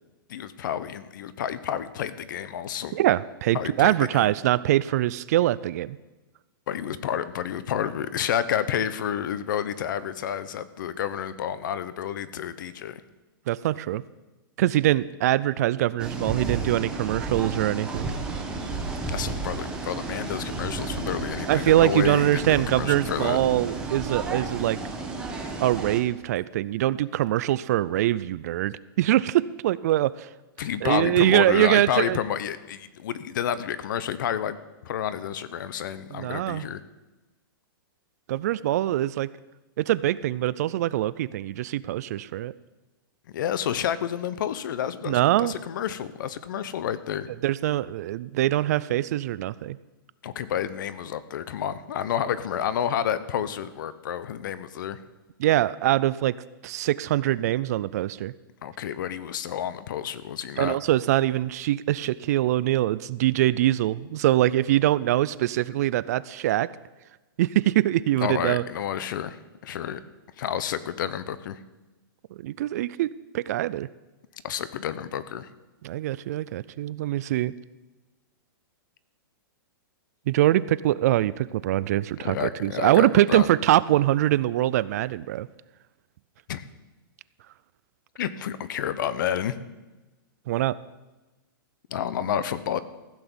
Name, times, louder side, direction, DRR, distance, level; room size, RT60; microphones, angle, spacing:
voice 1, 0.3-3.0 3.5-4.3 6.7-13.0 19.1-23.4 30.6-34.6 34.8-36.8 43.3-47.3 50.2-55.0 58.6-60.8 68.2-70.0 70.4-71.6 74.4-75.5 82.2-83.5 86.5-86.6 88.2-89.6 91.9-92.8, left 9 dB, 60° left, 15 dB, 0.8 m, -30 dB
voice 2, 2.9-6.0 13.5-14.0 14.6-18.1 21.5-24.8 25.6-30.3 30.8-32.2 36.1-36.7 38.3-39.3 39.8-42.5 45.1-45.5 47.4-49.8 55.4-56.4 56.6-58.3 60.6-66.7 67.4-68.6 72.4-73.9 75.8-77.5 80.3-85.5 90.5-90.8, right 14 dB, 45° right, 18 dB, 0.4 m, -23 dB
sound 1, 16.0-26.0, right 3 dB, 5° right, 1.2 m, -32 dB
15.0 x 6.1 x 7.0 m, 1.1 s
hypercardioid pair, 165°, 12 cm